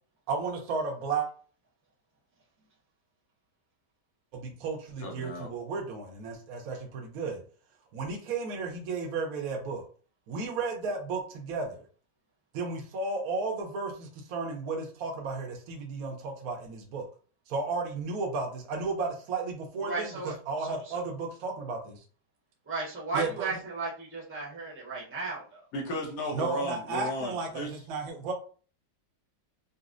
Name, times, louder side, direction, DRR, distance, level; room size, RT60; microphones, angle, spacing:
voice 1, 0.3-1.3 4.3-7.4 7.9-9.8 10.3-11.8 12.5-17.1 17.5-20.1 20.5-22.0 23.1-23.5 26.3-28.3, right 4 dB, 65° right, 1 dB, 1.1 m, -33 dB
voice 2, 5.0-5.5 25.7-27.7, equal, 60° left, 0 dB, 1.2 m, -35 dB
voice 3, 19.8-21.0 22.7-25.6, right 3 dB, 10° right, -5 dB, 0.6 m, -35 dB
4.0 x 2.0 x 2.5 m, 0.40 s
omnidirectional pair, 1.9 m